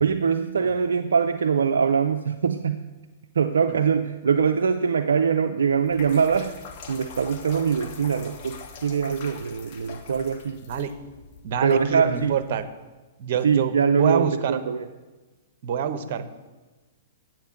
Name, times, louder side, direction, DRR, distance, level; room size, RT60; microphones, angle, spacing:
voice 1, 0.0-2.9 3.4-6.6 6.9-10.6 11.6-12.3 13.4-14.9, right 6 dB, 75° right, 6 dB, 0.5 m, -23 dB
sound 1, 5.7-12.6, left 5 dB, 45° left, 1.6 m, -44 dB
voice 2, 11.4-12.6 13.2-14.6 15.6-16.3, right 8 dB, 55° right, 11 dB, 0.9 m, -26 dB
9.3 x 7.5 x 6.4 m, 1.2 s
figure-of-eight pair, 110°, 0 cm